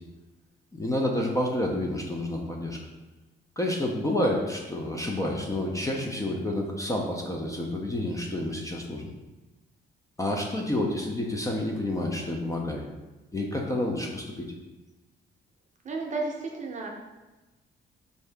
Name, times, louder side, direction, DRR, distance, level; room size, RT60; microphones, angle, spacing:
voice 1, 0.7-2.8 3.6-9.1 10.2-12.8 13.3-14.5, left 1 dB, 15° left, -1 dB, 0.5 m, -29 dB
voice 2, 15.8-16.9, right 3 dB, 40° right, 0 dB, 0.7 m, -32 dB
3.7 x 2.7 x 3.3 m, 1.1 s
cardioid pair, 90°, 20 cm